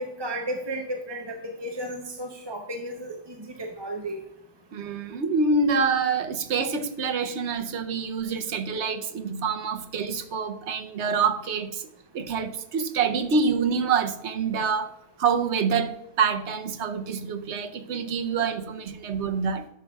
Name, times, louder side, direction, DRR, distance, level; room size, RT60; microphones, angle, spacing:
voice 1, 0.0-4.2, right 1 dB, 30° right, 2 dB, 0.7 m, -33 dB
voice 2, 4.7-11.9 12.1-14.9 15.2-19.7, right 5 dB, 90° right, 7 dB, 1.1 m, -26 dB
11.0 x 6.6 x 2.3 m, 0.86 s
omnidirectional pair, 1.1 m